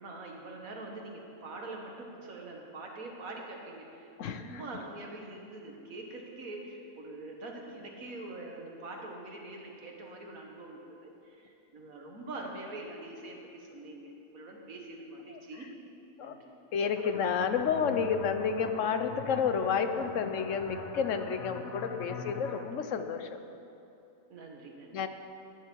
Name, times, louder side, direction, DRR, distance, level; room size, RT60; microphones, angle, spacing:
voice 1, 0.0-15.7 16.2-16.5 24.3-25.0, right 2 dB, 90° right, 0 dB, 2.1 m, -44 dB
voice 2, 4.2-4.6 16.2-16.3 16.7-23.4 24.9-25.1, left 6 dB, 70° left, 8 dB, 1.1 m, -30 dB
sound 1, 17.0-22.6, left 3 dB, 90° left, 1.6 m, -42 dB
16.0 x 10.5 x 4.6 m, 2.8 s
omnidirectional pair, 1.4 m